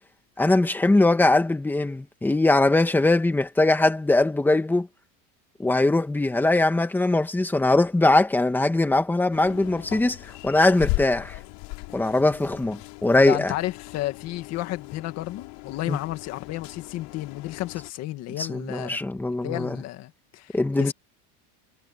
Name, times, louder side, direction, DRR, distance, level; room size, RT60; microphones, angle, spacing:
voice 1, 0.4-4.9 5.6-10.2 10.4-11.3 11.9-13.5 15.9-16.0 18.4-19.8 20.5-20.9, left 2 dB, 5° left, 1.9 m, -21 dB
sound 1, 9.3-17.9, left 25 dB, 60° left, 3.4 m, -37 dB
voice 2, 13.3-19.0 19.4-20.9, left 16 dB, 40° left, 2.1 m, -32 dB
cardioid pair, 170°, 40 cm